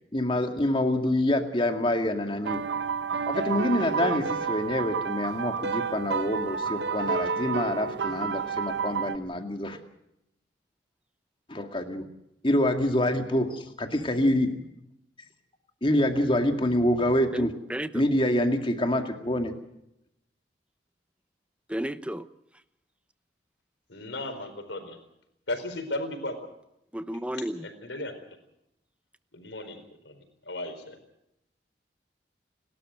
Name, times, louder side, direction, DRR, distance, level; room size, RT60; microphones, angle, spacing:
voice 1, 0.1-2.6 3.3-9.8 11.5-12.0 12.4-14.6 15.8-17.5 17.9-19.5, left 1 dB, 30° left, 2.2 m, -26 dB
sound 1, 2.4-9.2, right 5 dB, 75° right, 0.9 m, -30 dB
voice 2, 17.3-17.9 21.7-22.3 26.9-27.7, right 1 dB, 5° right, 0.8 m, -32 dB
voice 3, 23.9-25.0 25.5-26.3 27.3-28.1 29.3-31.0, left 2 dB, 85° left, 4.4 m, -36 dB
29.5 x 12.5 x 7.8 m
head